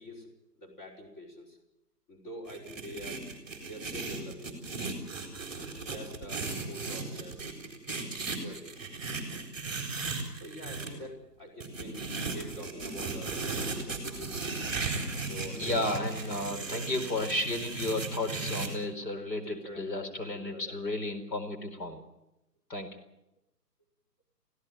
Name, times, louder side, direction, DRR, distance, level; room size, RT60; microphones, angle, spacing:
voice 1, 0.0-1.6 2.1-3.3 3.6-4.6 5.6-7.4 8.3-8.8 10.3-14.6 15.2-15.9 16.6-17.3 19.4-20.8, equal, 30° left, -1 dB, 5.4 m, -45 dB
sound 1, 2.5-10.9 11.6-18.7, right 3 dB, ahead, 3.4 m, -36 dB
voice 2, 15.6-22.0 22.7-23.0, left 2 dB, 90° left, 6 dB, 4.5 m, -33 dB
23.0 x 16.5 x 9.1 m, 0.90 s
hypercardioid pair, 170°, 49 cm